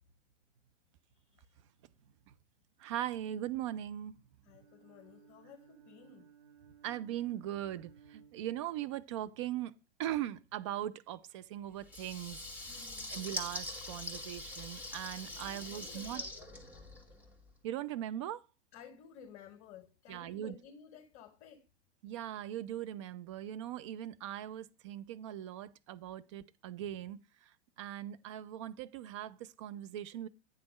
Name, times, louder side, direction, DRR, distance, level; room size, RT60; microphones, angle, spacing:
voice 1, 2.8-4.2 6.8-12.8 13.1-16.2 17.6-18.4 20.1-20.6 22.0-30.3, right 12 dB, 30° right, 0.3 m, -40 dB
Bowed string instrument, 4.4-9.0, right 8 dB, 65° right, 2.5 m, -61 dB
voice 2, 4.5-6.3 12.7-13.1 15.3-16.6 18.7-21.7, left 7 dB, 35° left, 0.9 m, -55 dB
Water tap faucet / Liquid, 11.8-17.3, left 2 dB, 5° right, 1.5 m, -43 dB
8.7 x 3.4 x 6.1 m
figure-of-eight pair, 100°, 35 cm